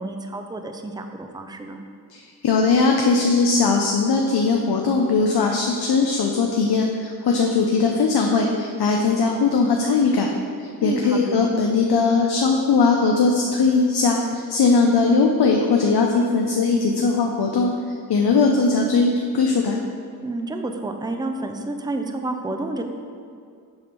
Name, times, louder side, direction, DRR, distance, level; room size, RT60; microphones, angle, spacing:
voice 1, 0.0-1.8 10.8-11.5 20.2-22.8, right 2 dB, 10° right, 5 dB, 0.5 m, -29 dB
voice 2, 2.1-10.3 10.6-17.7 18.1-19.8, left 4 dB, 75° left, 1 dB, 0.7 m, -19 dB
7.8 x 3.6 x 6.0 m, 2.3 s
wide cardioid pair, 105°, 39 cm